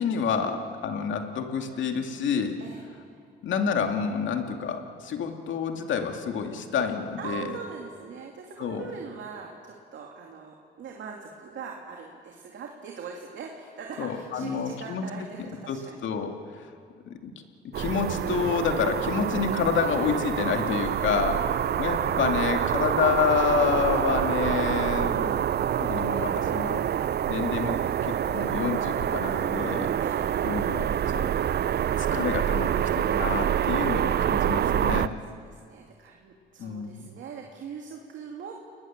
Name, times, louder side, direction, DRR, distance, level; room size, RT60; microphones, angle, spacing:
voice 1, 0.0-2.6 3.4-7.5 8.6-8.9 14.0-15.0 15.7-15.8 16.0-16.3 16.6-16.7 17.1-17.4 17.8-21.4 21.8-25.5 25.8-26.8 27.3-27.8 28.0-29.9 30.4-30.9 31.1-31.3 32.0-35.1 36.6-37.1, left 6 dB, 75° left, 4 dB, 2.4 m, -28 dB
voice 2, 2.6-3.2 7.2-16.0 20.8-21.1 30.0-30.4 34.8-38.5, right 6 dB, 70° right, 0 dB, 2.7 m, -42 dB
sound 1, 17.7-35.1, right 10 dB, 55° right, 0.6 m, -26 dB
30.0 x 20.5 x 7.5 m, 2.2 s
cardioid pair, 90°, 20 cm